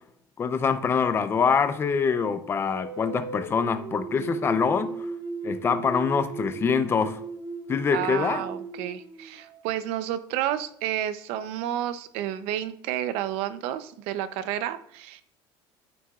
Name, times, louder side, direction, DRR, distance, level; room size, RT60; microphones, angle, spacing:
voice 1, 0.4-4.9 5.4-7.2 7.7-8.4, left 6 dB, 20° left, 0.6 m, -24 dB
sound 1, 2.5-9.8, right 3 dB, 40° right, 3.1 m, -37 dB
voice 2, 7.9-15.2, right 11 dB, 70° right, 0.7 m, -31 dB
9.4 x 9.3 x 2.4 m
cardioid pair, 150°, 11 cm